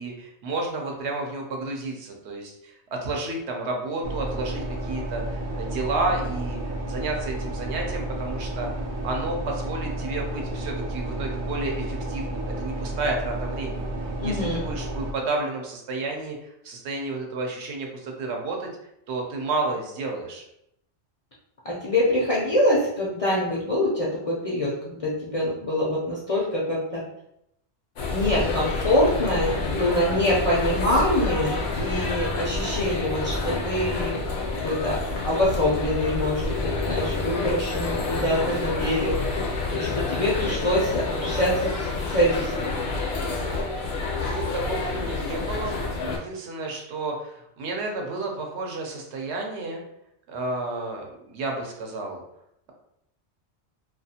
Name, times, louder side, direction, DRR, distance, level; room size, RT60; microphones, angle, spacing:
voice 1, 0.0-6.6 6.9-8.7 9.0-13.9 14.2-16.4 16.6-18.7 19.1-20.4 44.1-49.8 50.3-52.2, right 2 dB, 75° right, 1 dB, 0.9 m, -31 dB
sound 1, 4.0-15.1, right 1 dB, 60° right, 0.6 m, -31 dB
voice 2, 14.2-14.6 21.6-27.0 28.1-34.3 34.6-35.0 35.2-39.4 39.7-41.7 42.1-42.5, left 1 dB, 50° left, -6 dB, 0.4 m, -25 dB
sound 2, 28.0-46.2, left 3 dB, 70° left, 0.8 m, -28 dB
2.4 x 2.4 x 2.7 m, 0.78 s
omnidirectional pair, 1.2 m